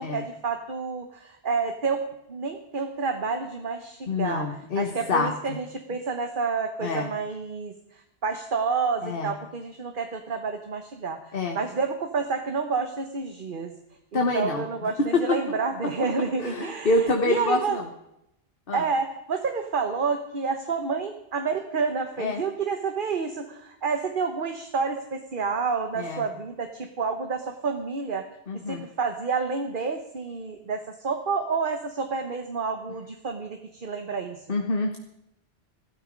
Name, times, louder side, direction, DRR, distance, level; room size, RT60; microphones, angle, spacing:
voice 1, 0.0-2.0 2.3-4.5 4.8-13.7 14.1-17.0 17.2-17.8 18.7-28.2 28.7-34.4, right 5 dB, 55° right, 6 dB, 1.3 m, -29 dB
voice 2, 4.1-5.6 6.8-7.1 9.0-9.3 11.3-11.6 14.1-14.6 15.1-15.2 16.4-17.9 18.7-18.8 22.2-22.4 25.9-26.2 28.5-28.8 34.5-35.0, left 3 dB, 60° left, 3 dB, 1.5 m, -26 dB
15.5 x 13.0 x 5.3 m, 0.82 s
omnidirectional pair, 1.1 m